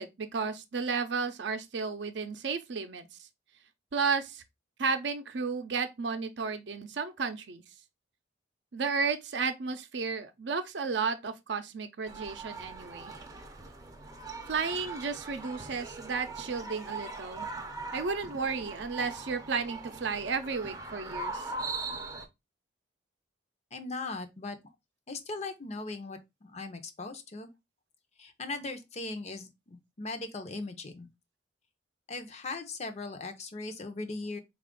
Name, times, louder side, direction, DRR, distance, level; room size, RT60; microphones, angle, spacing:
voice 1, 0.0-3.3 3.9-4.4 4.8-7.6 8.7-13.1 14.5-17.5 17.9-21.5, right 5 dB, 65° right, 0.5 m, -33 dB
sound 1, 12.1-22.2, right 3 dB, 20° right, 0.5 m, -41 dB
voice 2, 23.7-24.6 25.1-27.5 28.2-31.1 32.1-34.4, left 3 dB, 35° left, 0.6 m, -39 dB
4.2 x 2.4 x 3.6 m
head